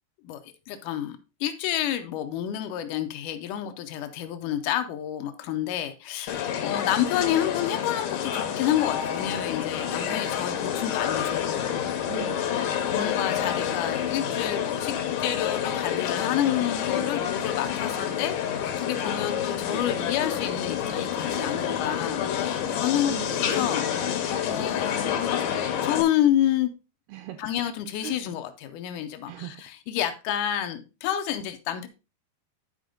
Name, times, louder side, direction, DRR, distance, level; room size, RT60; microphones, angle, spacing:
voice 1, 0.2-12.0 12.9-18.4 18.6-24.1 24.4-25.3 25.8-26.7 27.4-31.9, left 11 dB, 85° left, 7 dB, 1.8 m, -29 dB
sound 1, 6.3-26.0, left 9 dB, 70° left, 2.3 m, -28 dB
voice 2, 9.9-10.4 12.1-13.0 21.8-22.4 23.1-23.4 27.1-27.5 28.0-28.2 29.3-29.6, right 12 dB, 80° right, 6 dB, 2.6 m, -41 dB
9.9 x 5.1 x 3.8 m, 0.29 s
omnidirectional pair, 4.6 m